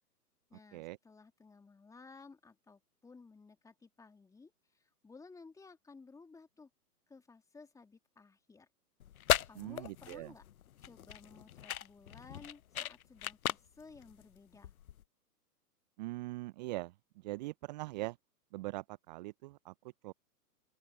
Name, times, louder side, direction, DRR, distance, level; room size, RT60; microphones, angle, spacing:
voice 1, 0.5-6.7 7.1-8.7 9.5-10.4 10.8-14.7, left 4 dB, 5° left, 2.7 m, -56 dB
sound 1, 9.0-15.0, left 10 dB, 60° left, 0.8 m, -37 dB
voice 2, 9.6-10.3 16.0-16.9 17.2-18.2 18.5-19.7 20.0-20.1, right 20 dB, 25° right, 0.8 m, -41 dB
open air
figure-of-eight pair, 120°, 48 cm